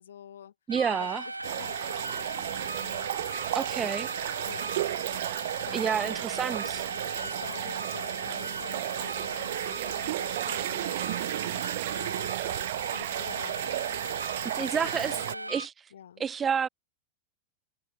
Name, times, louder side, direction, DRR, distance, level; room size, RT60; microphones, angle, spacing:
voice 1, 0.0-0.5 0.8-2.5 2.8-3.6 4.4-4.7 5.6-6.2 6.6-6.7 7.2-12.6 12.9-13.9 14.6-15.6 15.9-16.2, left 9 dB, 65° left, 1.7 m, -48 dB
voice 2, 0.7-1.2 3.5-4.1 5.7-6.8 14.4-15.2 15.5-15.7 16.2-16.7, right 7 dB, 20° right, 0.3 m, -29 dB
AT&T Cordless Phone shaken back and forth AM Radio, 0.7-15.7, right 2 dB, 85° right, 1.7 m, -38 dB
sound 1, 1.4-15.3, right 17 dB, 55° right, 1.1 m, -33 dB
figure-of-eight pair, 90°, 0 cm